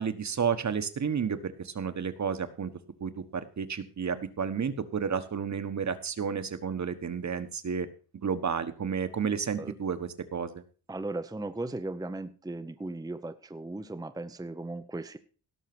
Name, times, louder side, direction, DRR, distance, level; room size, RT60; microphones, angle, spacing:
voice 1, 0.0-2.7 3.0-7.9 8.1-10.6, right 6 dB, 45° right, 10 dB, 1.4 m, -31 dB
voice 2, 10.9-15.2, right 2 dB, 10° right, 8 dB, 0.7 m, -37 dB
17.5 x 6.5 x 6.1 m, 0.39 s
wide cardioid pair, 130°, 40 cm